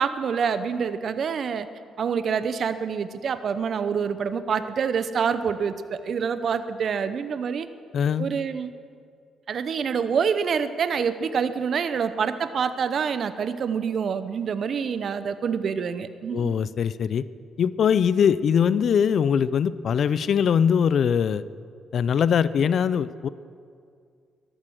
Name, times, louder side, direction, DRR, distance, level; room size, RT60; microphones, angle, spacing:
voice 1, 0.0-1.7 2.0-7.7 8.2-8.7 9.5-16.5, right 6 dB, 55° right, 12 dB, 0.7 m, -26 dB
voice 2, 7.9-8.3 16.3-17.2 17.6-21.4 21.9-23.3, left 7 dB, 60° left, 17 dB, 0.4 m, -22 dB
13.5 x 11.5 x 6.4 m, 2.3 s
cardioid pair, 90°, 0 cm